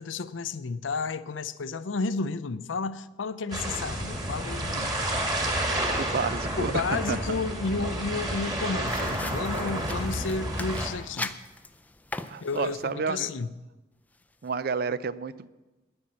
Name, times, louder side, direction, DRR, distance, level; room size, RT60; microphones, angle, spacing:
voice 1, 0.0-5.4 6.6-11.3 12.4-13.6, left 4 dB, 90° left, 0.6 m, -32 dB
sound 1, 3.5-10.9, right 1 dB, 20° right, 2.1 m, -30 dB
voice 2, 6.0-6.8 7.1-7.2 12.3-13.3 14.4-15.5, right 5 dB, 50° right, 0.4 m, -30 dB
sound 2, 8.8-12.9, left 2 dB, 10° left, 0.4 m, -39 dB
10.5 x 9.7 x 7.5 m
head